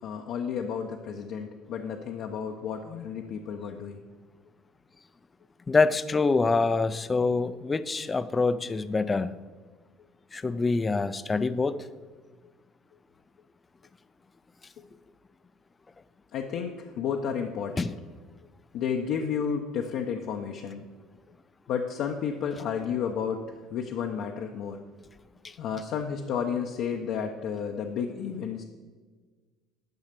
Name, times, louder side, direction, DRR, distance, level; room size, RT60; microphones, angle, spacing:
voice 1, 0.0-4.0 14.8-14.9 16.3-17.9 18.7-20.9 21.7-24.8 25.6-28.6, left 7 dB, 60° left, 2 dB, 0.8 m, -32 dB
voice 2, 5.7-9.3 10.3-11.8 17.8-17.9 25.4-25.5, left 3 dB, 20° left, 14 dB, 0.5 m, -25 dB
10.5 x 5.6 x 6.7 m, 1.4 s
supercardioid pair, 110°, 0 cm